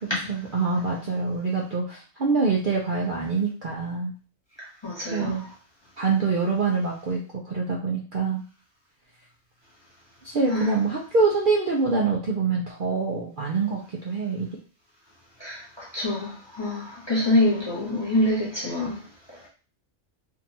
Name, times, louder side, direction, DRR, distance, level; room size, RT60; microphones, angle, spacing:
voice 1, 0.0-4.1 5.1-5.4 6.0-8.4 10.2-13.8 14.0-14.5, right 4 dB, 50° right, 0.6 m, -25 dB
voice 2, 4.6-5.5 10.5-10.7 15.4-19.0, left 1 dB, 25° left, 0.8 m, -26 dB
3.7 x 2.5 x 2.8 m
omnidirectional pair, 1.4 m